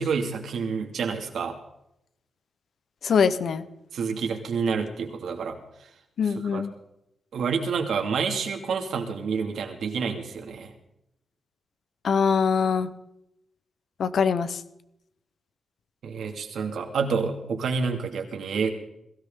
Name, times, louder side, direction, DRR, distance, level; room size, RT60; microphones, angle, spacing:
voice 1, 0.0-1.6 3.9-5.6 6.5-6.6 7.3-10.7 16.0-18.7, right 5 dB, 75° right, 3 dB, 2.6 m, -28 dB
voice 2, 3.0-3.6 6.2-6.7 12.0-12.9 14.0-14.6, left 6 dB, 60° left, 12 dB, 1.0 m, -23 dB
22.0 x 16.5 x 3.9 m, 0.82 s
wide cardioid pair, 165°, 0 cm